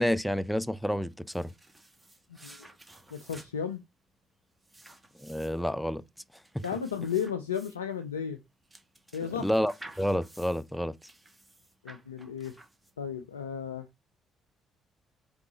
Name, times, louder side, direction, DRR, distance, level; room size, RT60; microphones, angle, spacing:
voice 1, 0.0-1.5 5.2-6.0 6.5-6.6 9.4-10.9, equal, 5° left, 0.4 m, -29 dB
sound 1, 1.1-13.2, right 1 dB, 15° right, 1.2 m, -54 dB
voice 2, 2.3-2.7 3.1-3.8 6.6-8.4 9.1-9.5 11.8-12.5 13.0-13.9, left 7 dB, 90° left, 0.3 m, -34 dB
4.7 x 3.6 x 2.9 m
hypercardioid pair, 45°, 0 cm